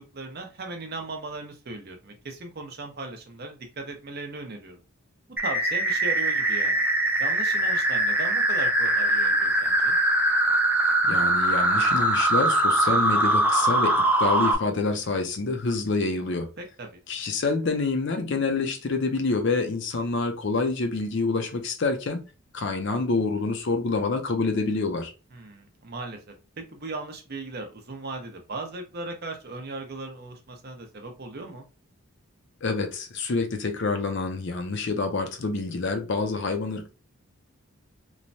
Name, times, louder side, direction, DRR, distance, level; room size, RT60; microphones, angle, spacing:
voice 1, 0.1-4.8 5.4-6.8 7.2-10.0 16.6-16.9 25.3-31.7, right 2 dB, 45° right, 0.6 m, -37 dB
sound 1, 5.4-14.5, right 1 dB, 5° right, 0.3 m, -22 dB
voice 2, 11.1-16.5 17.1-22.2 22.5-25.1 32.6-36.9, left 3 dB, 55° left, 0.5 m, -27 dB
3.1 x 2.1 x 2.6 m
head